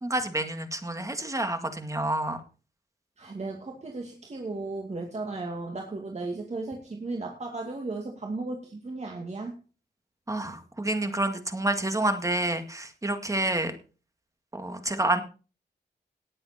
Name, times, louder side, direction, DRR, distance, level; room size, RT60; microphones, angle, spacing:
voice 1, 0.0-2.4 10.3-13.7 14.5-15.2, right 1 dB, 20° right, 7 dB, 2.1 m, -28 dB
voice 2, 3.2-9.6, right 3 dB, 40° right, 1 dB, 2.3 m, -35 dB
18.5 x 7.8 x 4.3 m, 0.35 s
wide cardioid pair, 150°, 17 cm